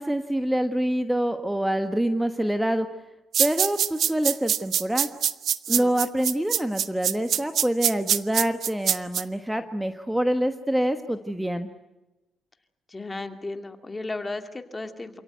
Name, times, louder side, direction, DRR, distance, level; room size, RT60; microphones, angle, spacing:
voice 1, 0.0-2.9 3.4-5.1 5.7-11.7, right 1 dB, 5° right, 8 dB, 1.4 m, -26 dB
sound 1, 3.3-9.2, right 9 dB, 65° right, 0.9 m, -24 dB
voice 2, 5.7-6.1 12.9-15.2, left 2 dB, 20° left, 7 dB, 2.4 m, -35 dB
27.5 x 18.0 x 9.2 m, 1.0 s
cardioid pair, 90°, 0 cm